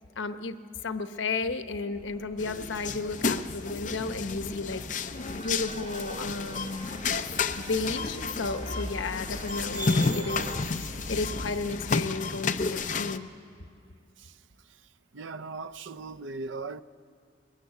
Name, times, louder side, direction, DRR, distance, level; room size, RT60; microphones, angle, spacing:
voice 1, 0.2-0.6 0.8-4.8 5.2-7.0 7.6-13.3, left 3 dB, 90° left, 0.9 m, -33 dB
sound 1, 1.9-11.6, equal, 10° right, 3.1 m, -42 dB
sound 2, 2.4-13.2, left 4 dB, 40° left, 0.6 m, -32 dB
sound 3, 5.1-10.6, right 3 dB, 35° right, 1.1 m, -46 dB
voice 2, 15.1-16.8, right 3 dB, 85° right, 0.6 m, -38 dB
22.0 x 20.0 x 8.1 m
head